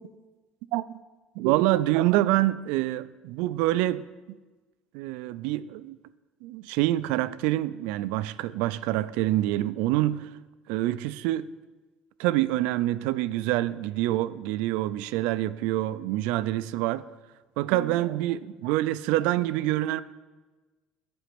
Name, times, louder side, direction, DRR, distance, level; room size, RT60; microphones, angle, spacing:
voice 1, 1.4-4.1 4.9-6.0 6.4-10.3 10.7-11.5 12.2-17.0 17.6-20.0, right 15 dB, 80° right, 0.4 m, -26 dB
10.5 x 5.1 x 7.6 m
cardioid pair, 155°, 2 cm